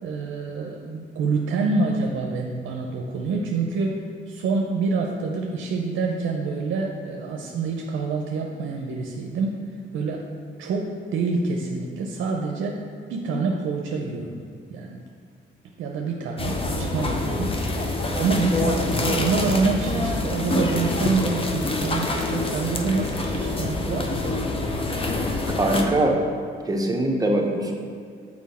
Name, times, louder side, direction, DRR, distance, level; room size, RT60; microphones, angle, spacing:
voice 1, 0.0-4.0 4.3-9.6 9.9-10.2 10.6-12.8 13.1-15.0 15.8-17.6 18.1-24.2, right 4 dB, 75° right, 1 dB, 0.6 m, -26 dB
sound 1, 16.4-25.8, left 2 dB, 30° left, 0.8 m, -26 dB
voice 2, 25.6-26.2 26.7-27.7, right 1 dB, 20° right, 0 dB, 0.9 m, -22 dB
6.1 x 4.4 x 4.2 m, 2.2 s
cardioid pair, 90°, 20 cm